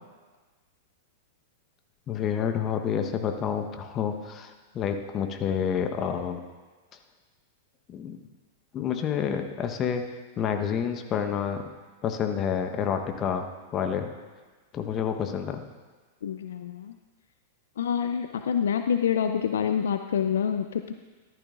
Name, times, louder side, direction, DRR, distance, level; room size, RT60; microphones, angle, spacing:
voice 1, 2.1-6.4 7.9-8.2 8.7-10.0 10.4-11.6 12.0-13.4 13.7-14.1 14.7-15.6, left 8 dB, 30° left, 5 dB, 1.1 m, -29 dB
voice 2, 16.2-16.9 17.8-20.9, left 8 dB, 70° left, 7 dB, 0.4 m, -27 dB
14.0 x 12.0 x 2.5 m, 1.4 s
figure-of-eight pair, 100°, 0 cm